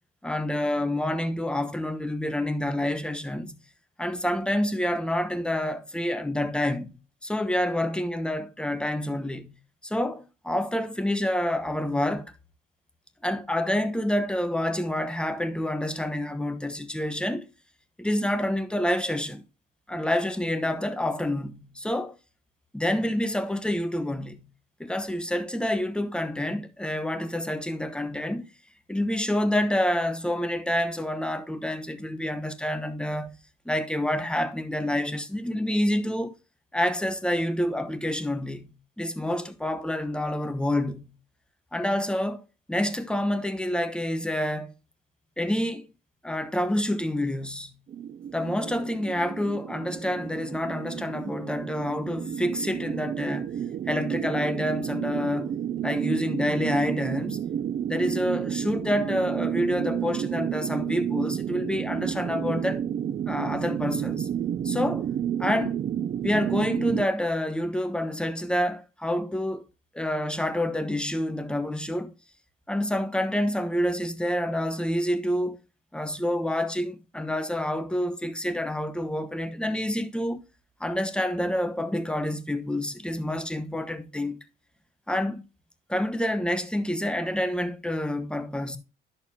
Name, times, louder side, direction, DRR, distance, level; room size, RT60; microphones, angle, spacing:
voice 1, 0.2-3.6 4.0-12.3 13.2-17.5 18.0-19.4 19.9-22.2 22.7-24.5 24.8-28.5 28.9-33.3 33.7-36.3 36.7-41.2 41.7-42.4 42.7-44.7 45.4-45.9 46.2-47.8 48.3-53.5 53.9-55.5 55.8-57.5 57.9-62.9 63.3-64.3 64.6-65.1 65.4-65.8 66.2-69.6 69.9-72.1 72.7-75.6 75.9-80.4 80.8-84.4 85.1-85.4 85.9-88.8, left 1 dB, 5° left, 1.0 m, -28 dB
sound 1, 47.9-67.1, right 9 dB, 40° right, 0.4 m, -31 dB
10.5 x 6.6 x 2.7 m
cardioid pair, 90°, 20 cm